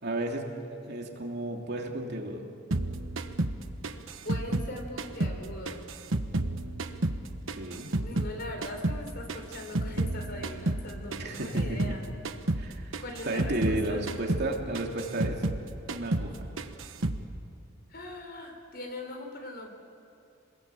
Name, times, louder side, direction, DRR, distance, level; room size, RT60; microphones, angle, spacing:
voice 1, 0.0-2.4 7.5-7.9 11.2-12.0 12.6-15.4 15.9-16.5, right 1 dB, 55° right, 1 dB, 3.0 m, -33 dB
sound 1, 2.7-5.4 5.7-8.4 8.6-12.0 12.2-12.7 12.9-15.6 15.9-16.3 16.6-17.2, right 2 dB, 70° right, 1.3 m, -31 dB
voice 2, 4.2-5.9 8.0-12.1 13.0-14.1 17.9-19.7, left 1 dB, 50° left, 4 dB, 4.0 m, -40 dB
27.0 x 21.0 x 8.6 m, 2.6 s
head